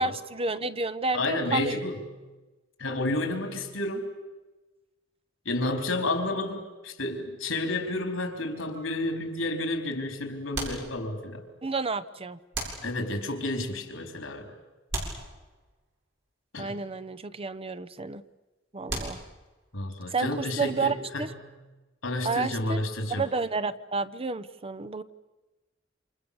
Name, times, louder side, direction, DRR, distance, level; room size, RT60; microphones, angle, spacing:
voice 1, 0.0-1.8 11.6-12.4 16.6-18.2 18.7-19.2 20.1-21.3 22.2-22.8 23.1-25.0, right 3 dB, 30° right, 14 dB, 0.8 m, -30 dB
voice 2, 1.1-2.0 2.8-4.1 5.4-11.5 12.8-14.5 16.5-16.8 19.7-21.3 22.0-23.2, left 2 dB, 75° left, 5 dB, 4.5 m, -31 dB
sound 1, 8.7-9.3 10.5-11.5 12.5-13.4 14.9-16.0 18.9-19.7, right 2 dB, 65° right, 7.7 m, -37 dB
29.0 x 27.0 x 7.1 m, 1.2 s
head